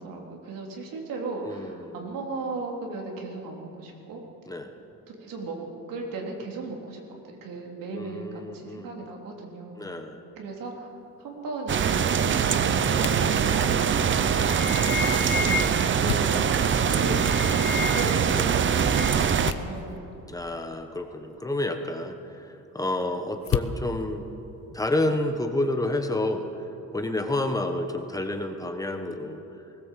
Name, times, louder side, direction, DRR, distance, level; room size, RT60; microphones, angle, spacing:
voice 1, 0.0-4.2 5.1-10.0 10.4-10.9 11.2-13.9 15.8-16.5 16.8-20.1, right 3 dB, 85° right, 0 dB, 3.5 m, -36 dB
voice 2, 1.4-2.0 4.5-4.7 7.9-9.1 9.8-10.2 16.8-17.0 18.3-18.5 20.3-24.2 24.7-29.4, left 1 dB, 10° left, 5 dB, 1.2 m, -30 dB
sound 1, 10.5-25.4, left 9 dB, 90° left, 1.1 m, -40 dB
sound 2, 11.7-19.5, right 7 dB, 35° right, 0.8 m, -23 dB
sound 3, 13.9-14.1 14.4-16.0 16.8-18.3 18.6-19.4, left 6 dB, 35° left, 0.9 m, -33 dB
19.5 x 17.5 x 7.5 m, 2.9 s
cardioid pair, 155°, 33 cm